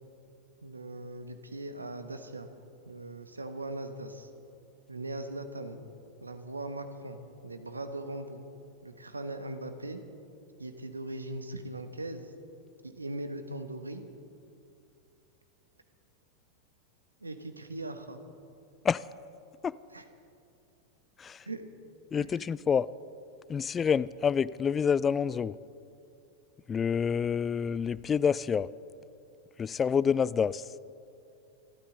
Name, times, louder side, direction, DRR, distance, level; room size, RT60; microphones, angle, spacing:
voice 1, 0.6-2.5 2.9-4.3 4.9-5.9 6.2-8.4 8.8-10.0 10.6-12.3 12.8-14.0 17.2-18.2 19.9-20.0 21.5-21.6 22.2-22.3, right 2 dB, 80° right, 8 dB, 1.2 m, -39 dB
voice 2, 22.1-22.9 23.5-25.6 26.7-28.7 29.6-30.7, left 7 dB, 20° left, 20 dB, 0.3 m, -27 dB
27.5 x 13.0 x 3.8 m, 2.6 s
figure-of-eight pair, 90°, 0 cm